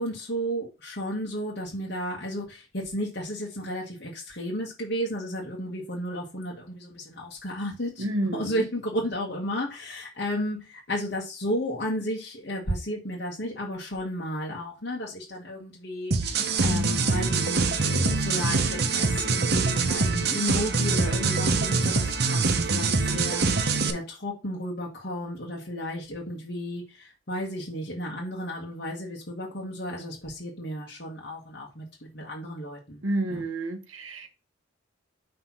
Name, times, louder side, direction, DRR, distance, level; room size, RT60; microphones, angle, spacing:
voice 1, 0.0-8.0 8.3-33.0 33.3-33.5, equal, 55° left, 1.4 m, -33 dB
voice 2, 8.0-8.6 33.0-34.3, right 1 dB, 80° right, 1.1 m, -29 dB
sound 1, 16.1-23.9, right 4 dB, 50° right, 0.8 m, -24 dB
5.8 x 3.4 x 5.9 m
head